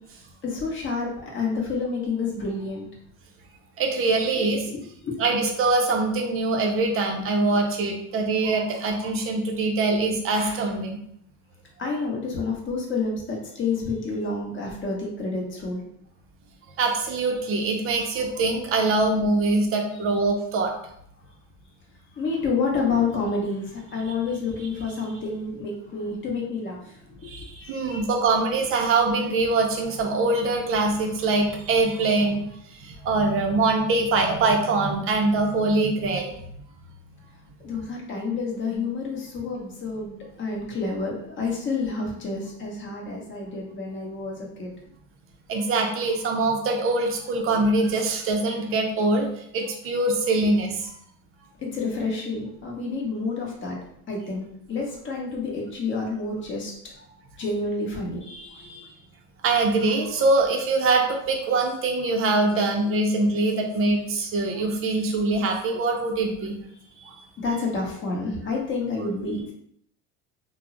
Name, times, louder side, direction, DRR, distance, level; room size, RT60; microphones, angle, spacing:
voice 1, 0.4-2.9 4.4-4.5 4.7-5.2 11.8-15.8 22.1-27.3 27.6-28.1 37.6-44.7 51.6-53.8 54.1-56.7 57.4-58.9 67.4-69.5, left 4 dB, 35° left, -2 dB, 0.8 m, -29 dB
voice 2, 3.8-4.7 5.2-11.0 16.8-20.7 27.2-32.5 32.8-36.3 45.5-49.3 49.5-50.9 59.4-66.6 67.0-67.1, right 3 dB, 40° right, 2 dB, 0.4 m, -23 dB
2.2 x 2.0 x 3.6 m, 0.71 s
cardioid pair, 135°, 33 cm